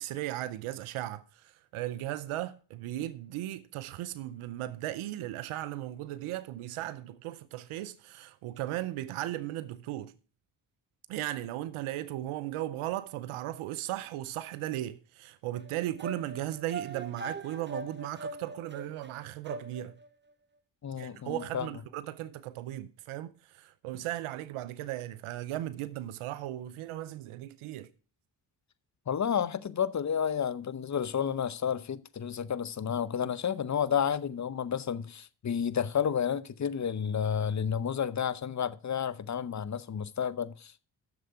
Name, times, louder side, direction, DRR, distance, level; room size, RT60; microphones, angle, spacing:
voice 1, 0.0-10.1 11.1-20.0 21.0-27.9, right 14 dB, 85° right, 0.7 m, -37 dB
sound 1, 15.5-20.1, right 3 dB, 20° right, 1.3 m, -41 dB
voice 2, 20.8-21.7 29.1-40.8, left 8 dB, 35° left, 0.7 m, -31 dB
7.9 x 6.8 x 6.8 m
supercardioid pair, 45°, 49 cm